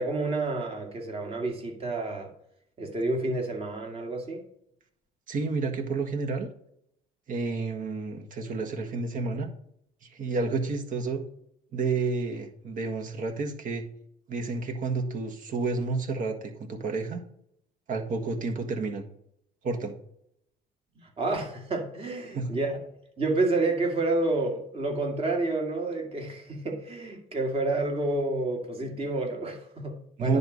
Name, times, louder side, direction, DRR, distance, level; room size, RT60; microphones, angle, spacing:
voice 1, 0.0-2.3 2.8-4.4 21.2-22.8 23.2-30.4, right 2 dB, 35° right, 2 dB, 2.2 m, -29 dB
voice 2, 5.3-6.5 7.3-9.5 10.1-11.2 11.7-13.8 14.3-17.2 17.9-19.0 19.6-19.9 22.3-22.5 30.2-30.4, right 3 dB, 50° right, 5 dB, 1.5 m, -30 dB
10.0 x 4.1 x 6.3 m, 0.72 s
cardioid pair, 110°, 17 cm